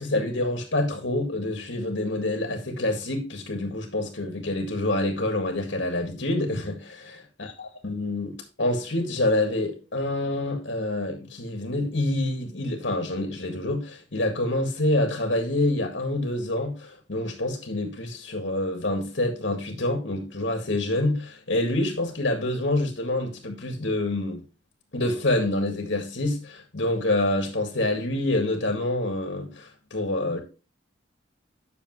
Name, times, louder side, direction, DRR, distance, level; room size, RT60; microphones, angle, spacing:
voice 1, 0.0-24.4 24.9-30.4, left 1 dB, 70° left, 1.9 m, -27 dB
10.5 x 6.7 x 3.1 m
head